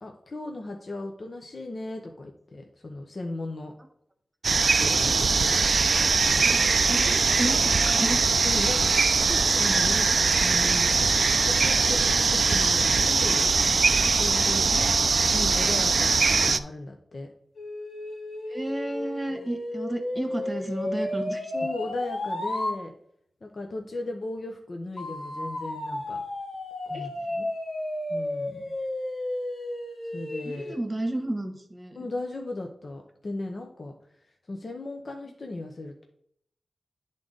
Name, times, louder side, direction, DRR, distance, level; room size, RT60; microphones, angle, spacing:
voice 1, 0.0-3.7 4.6-5.6 6.2-6.4 8.4-13.4 14.2-14.7 15.3-17.3 19.3-19.4 21.5-22.9 23.4-26.2 26.9-27.5 28.1-28.7 30.1-30.8 31.9-33.9 34.5-36.0, left 2 dB, 50° left, 2 dB, 0.8 m, -36 dB
sound 1, 4.4-16.6, right 4 dB, 65° right, 0.3 m, -22 dB
voice 2, 4.9-5.3 6.4-6.6 6.9-8.4 14.7-15.1 18.5-21.5 26.9-27.1 30.4-32.1, right 1 dB, 20° right, 6 dB, 1.2 m, -33 dB
sound 2, 17.6-22.8 25.0-30.8, left 1 dB, 70° left, 1.2 m, -33 dB
10.5 x 3.8 x 3.8 m, 0.69 s
wide cardioid pair, 105°, 0 cm